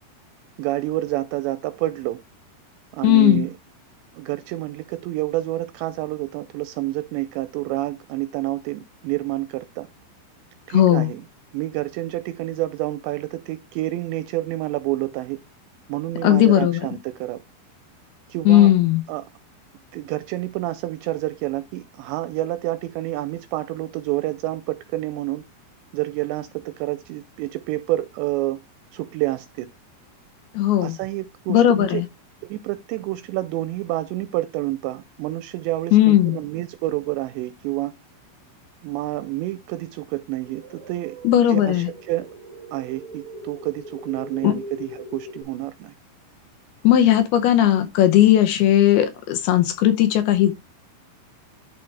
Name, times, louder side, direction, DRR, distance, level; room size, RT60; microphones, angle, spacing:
voice 1, 0.6-2.2 2.9-3.5 4.1-9.9 10.7-11.2 11.5-15.4 15.9-17.4 18.3-18.7 19.1-19.3 19.9-25.4 25.9-28.6 28.9-29.7 30.8-32.0 32.4-37.9 38.8-41.2 41.5-42.3 42.7-45.9, right 16 dB, 80° right, 2.6 m, -28 dB
voice 2, 3.0-3.5 10.7-11.1 16.2-16.9 18.5-19.0 30.5-31.0 31.5-32.1 35.9-36.4 41.2-41.9 44.4-44.5 46.8-50.5, left 12 dB, 80° left, 2.4 m, -17 dB
sound 1, 40.4-45.4, right 1 dB, 35° right, 0.5 m, -40 dB
12.0 x 4.6 x 3.3 m
omnidirectional pair, 5.4 m